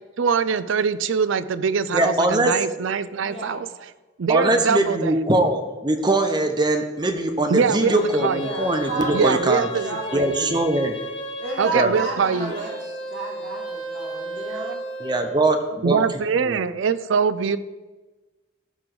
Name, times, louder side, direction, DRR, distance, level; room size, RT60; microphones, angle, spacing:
voice 1, 0.2-3.7 4.2-5.1 7.5-8.4 9.1-10.6 11.6-12.5 15.8-17.6, right 6 dB, 85° right, 14 dB, 0.4 m, -23 dB
voice 2, 1.9-2.5 4.3-9.7 10.1-10.9 11.7-12.0 15.0-16.0 16.4-16.6, right 2 dB, 20° right, 7 dB, 0.7 m, -22 dB
voice 3, 3.1-3.6 8.4-10.3 11.4-14.8, right 2 dB, 70° right, -3 dB, 2.1 m, -32 dB
sound 1, 7.7-11.8 12.3-15.3, right 2 dB, 25° left, 2.2 m, -33 dB
14.0 x 4.9 x 3.8 m, 1.2 s
head